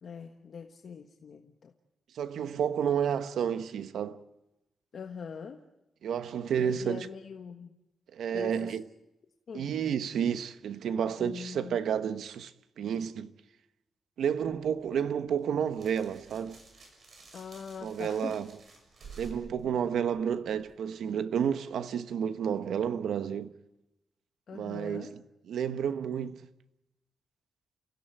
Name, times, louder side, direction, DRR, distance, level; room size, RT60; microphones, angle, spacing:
voice 1, 0.0-1.7 4.9-5.6 6.6-7.8 8.3-8.8 9.5-9.7 11.2-11.8 17.3-18.5 24.5-25.2, left 6 dB, 50° left, 1.4 m, -43 dB
voice 2, 2.1-4.2 6.0-7.1 8.1-8.8 9.5-12.5 12.8-13.3 14.2-16.6 17.8-18.5 19.2-23.5 24.5-25.2 25.5-26.4, right 8 dB, 80° right, 1.2 m, -31 dB
sound 1, 14.4-20.7, right 4 dB, 50° right, 6.9 m, -53 dB
30.0 x 16.5 x 9.2 m
wide cardioid pair, 170°, 0 cm